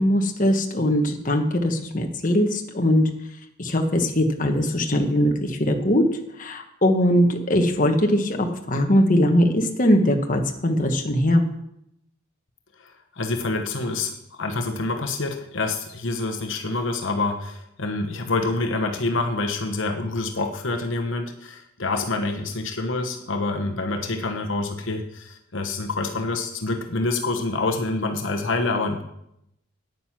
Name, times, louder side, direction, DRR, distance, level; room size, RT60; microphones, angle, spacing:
voice 1, 0.0-3.0 3.6-6.0 6.4-11.4, equal, 40° left, 4 dB, 1.2 m, -21 dB
voice 2, 12.8-29.0, left 3 dB, 65° left, 4 dB, 1.0 m, -27 dB
9.3 x 9.2 x 5.9 m, 0.78 s
head